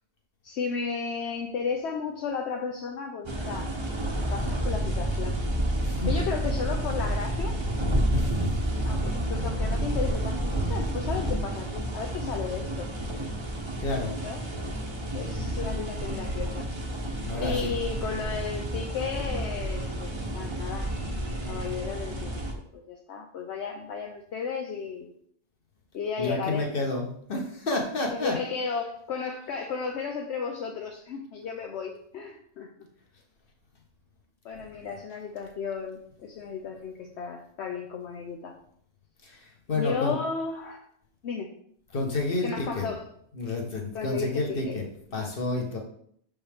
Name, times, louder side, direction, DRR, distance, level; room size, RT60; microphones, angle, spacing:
voice 1, 0.4-3.7 4.3-5.4 6.1-7.6 8.9-12.9 14.2-14.4 15.1-16.7 17.4-22.3 22.7-25.1 25.9-26.7 28.1-32.9 34.4-38.6 39.7-40.8 41.2-41.5 42.4-43.1 43.9-44.8, left 5 dB, 75° left, 2 dB, 1.0 m, -34 dB
sound 1, 3.3-22.5, right 1 dB, 25° right, 0.9 m, -30 dB
voice 2, 13.8-14.2 17.2-17.7 26.2-28.4 34.6-34.9 39.2-40.1 41.9-42.8 43.3-44.8 45.1-45.8, left 2 dB, 50° left, 1 dB, 1.5 m, -30 dB
sound 2, 15.8-16.7 17.0-18.4 18.9-20.1 20.5-21.9 22.2-22.5, right 1 dB, 90° right, 2.4 m, -38 dB
6.2 x 5.4 x 3.5 m, 0.64 s
omnidirectional pair, 1.2 m